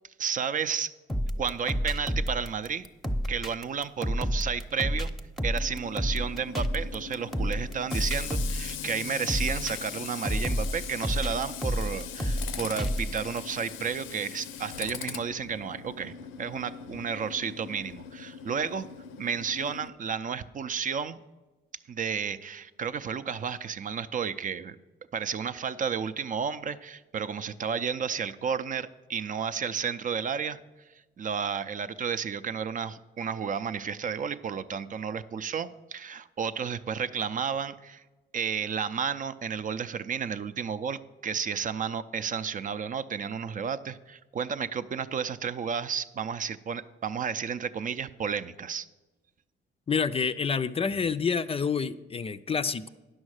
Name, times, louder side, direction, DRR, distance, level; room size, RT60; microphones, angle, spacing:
voice 1, 0.2-0.9 1.4-2.9 3.3-5.1 5.4-18.9 19.2-21.2 21.9-24.8 25.1-30.6 31.2-38.0 38.3-48.9, right 6 dB, 40° right, 12 dB, 0.5 m, -32 dB
sound 1, 1.1-13.4, equal, ahead, 0.8 m, -30 dB
Tools, 5.5-19.9, left 8 dB, 85° left, 0.6 m, -40 dB
voice 2, 49.9-52.9, left 5 dB, 30° left, 12 dB, 0.4 m, -28 dB
9.7 x 6.3 x 6.4 m, 1.1 s
cardioid pair, 90°, 20 cm